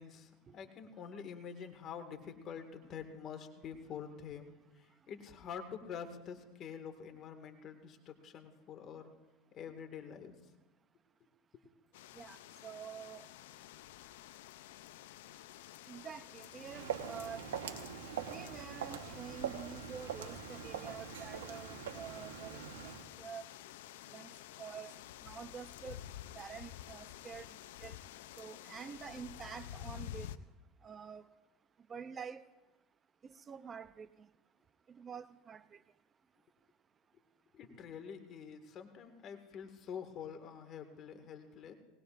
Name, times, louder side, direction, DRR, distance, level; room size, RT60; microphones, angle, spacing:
voice 1, 0.0-9.1 9.5-10.4 11.5-11.6 37.5-41.7, left 7 dB, 45° left, 2.0 m, -47 dB
sound 1, 11.9-30.4, left 12 dB, 80° left, 0.5 m, -51 dB
voice 2, 12.2-13.3 15.9-17.5 18.3-22.9 23.2-23.5 24.1-24.3 24.6-24.9 25.2-26.0 26.3-27.5 27.8-28.0 28.4-30.3 30.8-31.3 31.9-32.4 33.5-34.1 34.9-35.7, right 7 dB, 30° right, 0.6 m, -47 dB
Walk footsteps, 16.5-23.1, right 8 dB, 90° right, 1.2 m, -43 dB
19.5 x 19.5 x 2.6 m
supercardioid pair, 100°, 0 cm